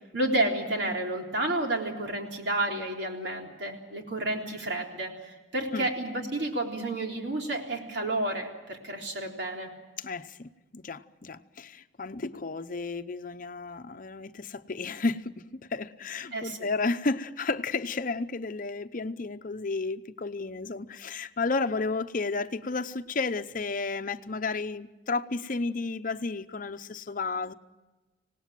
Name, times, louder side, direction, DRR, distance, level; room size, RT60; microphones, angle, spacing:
voice 1, 0.1-9.7 16.3-16.7, right 1 dB, 70° right, 3.7 m, -31 dB
voice 2, 10.0-15.4 15.7-27.5, left 3 dB, 50° left, 0.8 m, -32 dB
26.0 x 18.5 x 7.6 m
head